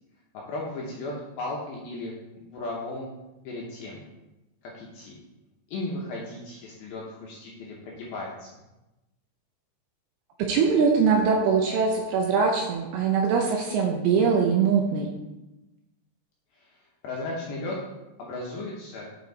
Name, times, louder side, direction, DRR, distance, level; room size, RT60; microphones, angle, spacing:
voice 1, 0.3-3.1 3.4-4.0 4.7-5.2 5.7-8.5 16.6-16.8 17.0-17.8 18.2-19.1, left 2 dB, 75° left, -3 dB, 2.3 m, -35 dB
voice 2, 10.5-15.1, right 5 dB, 85° right, 1 dB, 2.2 m, -22 dB
9.2 x 4.6 x 4.0 m, 1.0 s
omnidirectional pair, 5.4 m